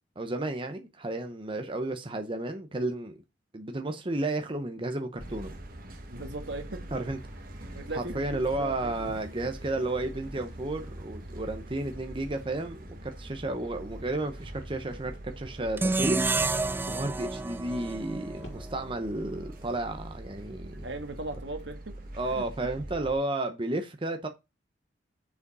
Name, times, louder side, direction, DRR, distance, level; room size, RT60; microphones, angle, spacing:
voice 1, 0.2-3.1 3.5-5.5 6.9-7.2 7.9-16.2 16.9-20.9 22.1-24.3, right 2 dB, 30° right, 0.9 m, -32 dB
sound 1, 5.2-23.1, right 1 dB, 50° right, 1.8 m, -43 dB
voice 2, 6.1-6.8 7.7-9.1 20.7-22.0 22.3-22.4, right 2 dB, 70° right, 1.7 m, -38 dB
Motor vehicle (road), 9.0-12.4 13.7-17.2 18.4-21.6 22.6-23.0, equal, 65° left, 3.5 m, -51 dB
sound 2, 15.8-19.0, right 3 dB, 10° right, 0.4 m, -30 dB
6.9 x 5.0 x 5.4 m
head